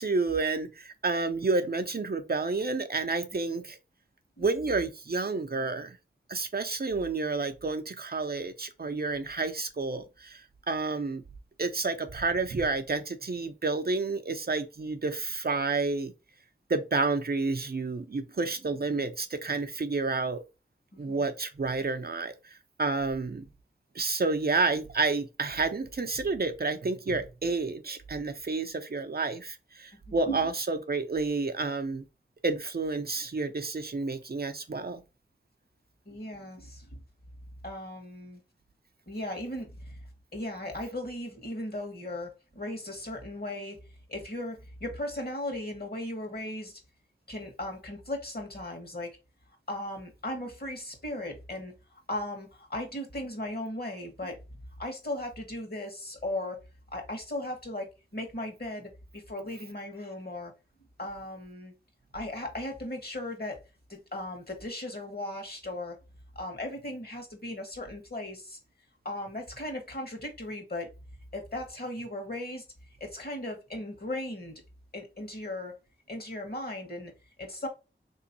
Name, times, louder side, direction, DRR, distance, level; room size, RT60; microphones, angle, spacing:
voice 1, 0.0-3.8 4.4-6.0 6.3-10.4 10.7-11.2 11.6-16.1 16.7-20.4 21.0-22.3 22.8-23.4 24.0-32.0 32.4-35.0, right 3 dB, 50° right, 0.6 m, -30 dB
voice 2, 20.9-21.3 29.9-30.4 36.0-36.9 37.6-38.4 39.1-40.0 40.3-43.8 44.1-46.8 47.3-49.2 49.7-54.4 54.8-56.6 56.9-60.5 61.0-61.7 62.1-63.6 63.9-66.0 66.3-68.6 69.0-70.9 71.3-72.6 73.0-74.6 74.9-75.7 76.1-77.1 77.4-77.7, left 1 dB, 50° left, 1.6 m, -37 dB
3.4 x 3.0 x 2.7 m
wide cardioid pair, 40°, 21 cm